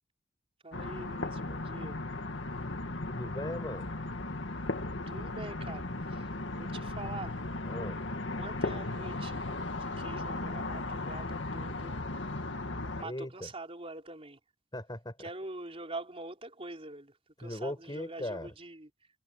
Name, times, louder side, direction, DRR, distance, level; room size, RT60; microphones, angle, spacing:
voice 1, 0.6-2.0 5.1-7.4 8.4-9.5 9.8-12.0 13.0-14.4 15.2-18.9, right 2 dB, 30° right, 4.2 m, -44 dB
sound 1, 0.7-13.0, left 2 dB, 75° left, 2.1 m, -36 dB
voice 2, 3.1-3.9 7.7-8.0 13.0-13.5 14.7-15.2 17.4-18.5, left 1 dB, 25° left, 5.1 m, -38 dB
head